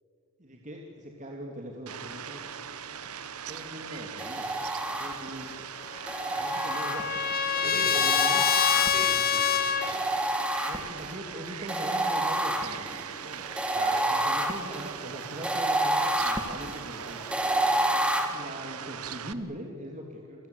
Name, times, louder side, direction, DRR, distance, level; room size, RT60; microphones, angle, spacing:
voice 1, 0.4-2.4 3.5-4.5 5.0-5.6 6.4-7.2 7.5-8.9 10.6-13.5 14.1-17.2 17.7-17.9 18.2-20.5, equal, 35° right, 1 dB, 2.6 m, -41 dB
Fowl, 1.9-19.3, right 7 dB, 85° right, 1.2 m, -40 dB
sound 1, 4.2-5.4 6.1-7.4 7.9-9.3 9.8-11.1 11.7-18.2, right 1 dB, 5° right, 1.9 m, -29 dB
Trumpet, 6.0-9.9, left 8 dB, 45° left, 1.4 m, -26 dB
voice 2, 7.6-8.1 8.9-10.1 13.7-14.1, right 3 dB, 50° right, 4 dB, 3.8 m, -40 dB
30.0 x 23.5 x 8.4 m, 2.4 s
head